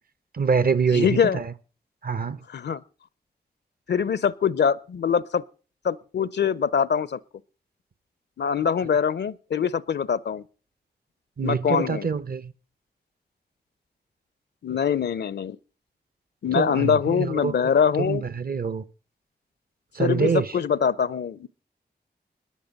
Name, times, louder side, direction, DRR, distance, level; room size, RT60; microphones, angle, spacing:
voice 1, 0.3-1.5 2.0-2.4 11.4-12.5 16.5-17.6 18.0-18.8 19.9-20.5, right 5 dB, 60° right, 0.8 m, -25 dB
voice 2, 0.9-1.4 2.5-2.8 3.9-5.4 5.8-7.2 8.4-10.4 11.4-12.1 14.6-15.6 16.4-18.2 20.0-21.5, left 7 dB, 75° left, 0.6 m, -23 dB
14.5 x 10.0 x 5.2 m
cardioid pair, 45°, 18 cm